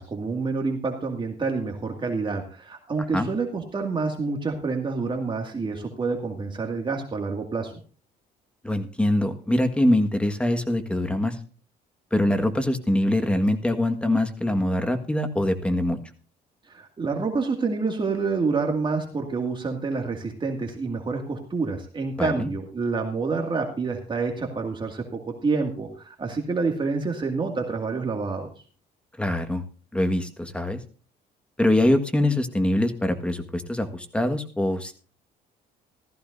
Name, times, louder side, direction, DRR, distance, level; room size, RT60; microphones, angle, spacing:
voice 1, 0.0-7.7 16.7-28.5, right 4 dB, 30° right, 2 dB, 2.2 m, -28 dB
voice 2, 8.6-11.3 12.1-16.0 22.2-22.5 29.2-29.6 29.9-30.8 31.6-34.9, left 1 dB, 5° left, 8 dB, 1.6 m, -23 dB
15.5 x 14.0 x 2.7 m, 0.39 s
cardioid pair, 110°, 17 cm